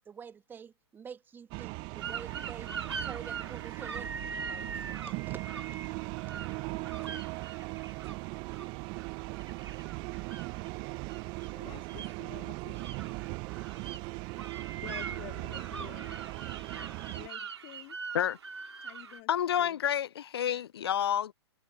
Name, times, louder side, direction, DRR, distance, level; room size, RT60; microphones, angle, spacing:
voice 1, 0.0-4.1 4.5-6.0, right 7 dB, 15° right, 1.4 m, -48 dB
sound 1, 1.5-17.3, right 27 dB, 35° right, 0.9 m, -39 dB
sound 2, 2.0-19.2, right 5 dB, 75° right, 2.1 m, -43 dB
voice 2, 11.5-12.9 14.8-16.2 17.2-18.0 18.8-19.3 19.6-19.8, left 30 dB, 35° left, 2.0 m, -49 dB
voice 3, 19.3-21.3, left 10 dB, 65° left, 0.5 m, -29 dB
figure-of-eight pair, 115°, 14 cm